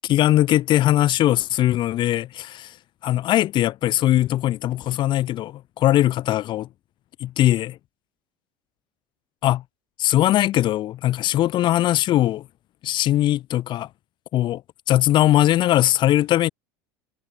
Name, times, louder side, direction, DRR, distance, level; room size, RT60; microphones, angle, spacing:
voice 1, 0.0-2.8 3.0-6.7 7.2-7.8 9.4-9.6 10.0-12.5 12.8-13.9 14.3-14.6 14.9-16.5, left 14 dB, 50° left, 4.7 m, -20 dB
supercardioid pair, 105°, 10 cm